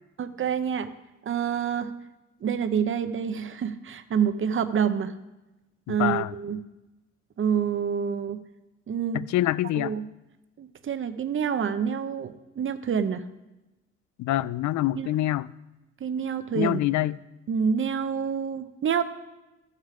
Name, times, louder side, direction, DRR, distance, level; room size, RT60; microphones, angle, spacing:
voice 1, 0.2-0.9 1.2-1.9 2.4-5.1 5.9-6.6 7.4-8.4 8.9-9.2 9.8-10.0 10.6-13.2 15.0-15.1 16.0-16.8 17.5-19.0, right 7 dB, 40° right, 11 dB, 0.8 m, -27 dB
voice 2, 5.9-6.3 9.1-9.9 14.2-15.5 16.5-17.2, left 15 dB, 70° left, 18 dB, 0.4 m, -26 dB
14.0 x 6.6 x 4.9 m, 1.0 s
cardioid pair, 90°, 30 cm